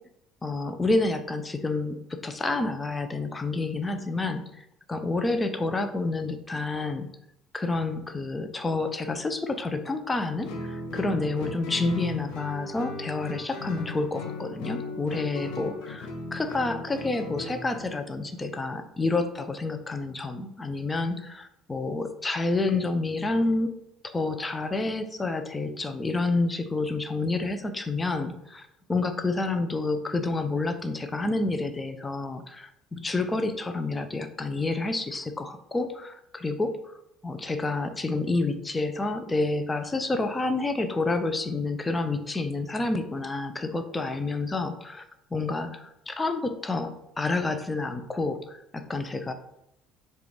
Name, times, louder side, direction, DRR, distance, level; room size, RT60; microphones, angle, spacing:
voice 1, 0.4-7.1 7.5-23.8 24.0-36.7 37.2-45.0 45.3-49.3, left 3 dB, 20° left, 8 dB, 0.5 m, -29 dB
Guitar, 10.4-17.9, left 3 dB, 60° left, 0.7 m, -37 dB
4.8 x 2.4 x 3.3 m, 0.80 s
figure-of-eight pair, 55°, 0 cm